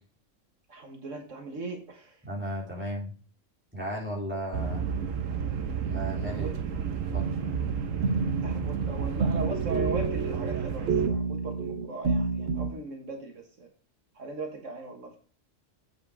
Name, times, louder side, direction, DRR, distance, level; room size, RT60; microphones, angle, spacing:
voice 1, 0.7-2.2 6.3-6.5 8.4-13.7 14.2-15.2, right 2 dB, 75° right, 3 dB, 1.9 m, -38 dB
voice 2, 2.3-3.1 3.7-4.9 5.8-6.8 7.1-7.2, equal, 10° right, -4 dB, 3.6 m, -35 dB
sound 1, 4.5-11.1, right 7 dB, 90° right, 1.5 m, -31 dB
sound 2, 7.2-12.7, right 4 dB, 55° right, 1.3 m, -30 dB
8.4 x 6.5 x 5.0 m, 0.40 s
omnidirectional pair, 1.3 m